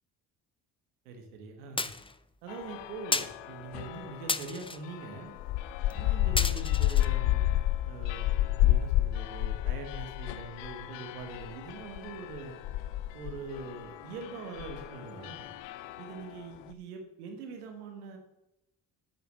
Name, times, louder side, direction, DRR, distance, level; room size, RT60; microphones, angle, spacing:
voice 1, 1.0-1.9 2.4-5.3 5.9-12.6 13.1-15.5 16.0-18.2, right 4 dB, 90° right, 4 dB, 1.6 m, -43 dB
sound 1, 1.8-2.1 3.1-3.4 4.3-4.8 5.9-6.0 6.4-7.1, left 3 dB, 10° left, 0.6 m, -32 dB
sound 2, 2.5-4.4 4.8-16.4, left 14 dB, 70° left, 0.6 m, -31 dB
8.7 x 6.1 x 6.4 m, 0.88 s
hypercardioid pair, 45°, 44 cm